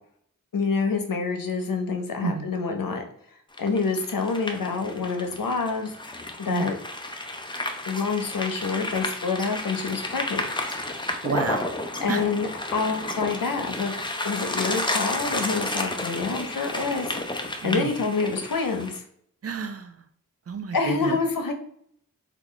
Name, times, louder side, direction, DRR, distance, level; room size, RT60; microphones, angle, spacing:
voice 1, 0.5-3.0 3.6-5.9 6.4-6.8 7.9-10.5 12.0-13.9 14.2-17.1 17.6-19.0 20.7-21.5, left 4 dB, 90° left, 5 dB, 0.6 m, -27 dB
sound 1, 3.5-19.0, left 1 dB, 15° left, 0.5 m, -32 dB
voice 2, 11.2-11.7 12.1-12.2 17.6-17.9 19.4-20.0 20.5-21.2, right 5 dB, 50° right, 8 dB, 0.4 m, -30 dB
3.0 x 2.3 x 3.8 m, 0.66 s
wide cardioid pair, 40°, 32 cm